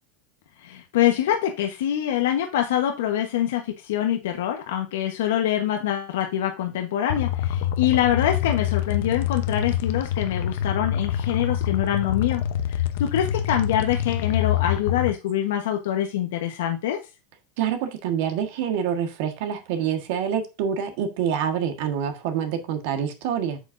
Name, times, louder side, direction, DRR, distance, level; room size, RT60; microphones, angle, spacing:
voice 1, 0.6-12.4 12.7-17.0, left 11 dB, 75° left, 4 dB, 1.2 m, -25 dB
sound 1, 7.1-15.1, left 10 dB, 60° left, 0.8 m, -26 dB
voice 2, 17.6-23.6, right 8 dB, 50° right, 6 dB, 1.5 m, -26 dB
8.0 x 7.2 x 2.6 m, 0.27 s
supercardioid pair, 180°, 0 cm